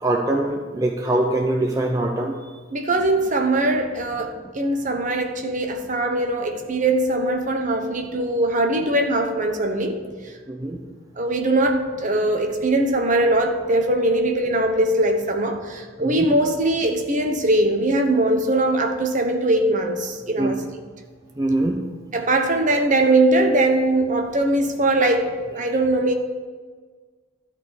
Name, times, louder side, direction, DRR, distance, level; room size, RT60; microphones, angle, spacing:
voice 1, 0.0-2.3 10.5-10.8 16.0-16.1 20.4-20.5 21.4-21.8, right 1 dB, 15° right, 0.6 m, -22 dB
voice 2, 2.7-10.0 10.2-10.3 11.2-20.6 22.1-26.1, right 1 dB, 35° right, 1.0 m, -21 dB
12.5 x 4.3 x 8.1 m
head